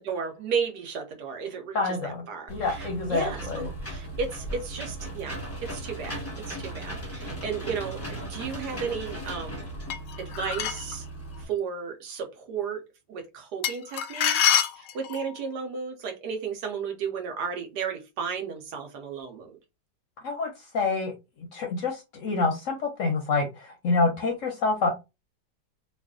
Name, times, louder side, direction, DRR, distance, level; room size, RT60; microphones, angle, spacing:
voice 1, 0.0-6.2 6.4-9.7 10.2-11.0 11.4-12.8 13.1-19.6, right 6 dB, 75° right, 1.4 m, -34 dB
voice 2, 1.7-2.2 2.5-3.7 20.2-21.1 21.5-24.9, left 3 dB, 65° left, 0.8 m, -27 dB
Engine / Mechanisms, 2.5-11.4, right 1 dB, 10° left, 0.8 m, -37 dB
sound 1, 9.9-10.9 13.6-15.3, left 9 dB, 90° left, 1.2 m, -26 dB
3.1 x 2.4 x 3.6 m
omnidirectional pair, 1.8 m